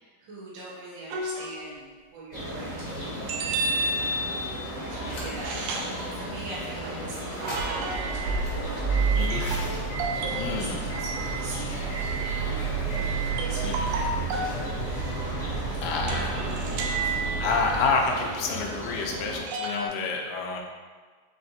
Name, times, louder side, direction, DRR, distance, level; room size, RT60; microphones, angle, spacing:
voice 1, 0.0-3.2 4.0-4.5 4.7-9.1 10.5-12.0 12.4-14.7 15.9-16.8, right 2 dB, 55° right, -7 dB, 1.4 m, -41 dB
sound 1, 1.1-1.8 3.3-4.6 5.4-6.0 7.4-8.3 9.3-10.6 13.4-14.6 16.1-17.8 19.5-19.9, right 2 dB, 80° right, 1.5 m, -31 dB
sound 2, 2.3-19.4, right 1 dB, 45° left, 0.5 m, -35 dB
sound 3, 5.1-5.6 6.0-6.1 7.2-17.9, right 5 dB, 65° left, 1.5 m, -31 dB
voice 2, 9.2-9.5 10.3-10.8 13.6-13.9 15.8-16.4 17.4-20.6, left 4 dB, 80° left, 1 dB, 2.0 m, -28 dB
5.1 x 3.2 x 2.7 m, 1.4 s
omnidirectional pair, 3.4 m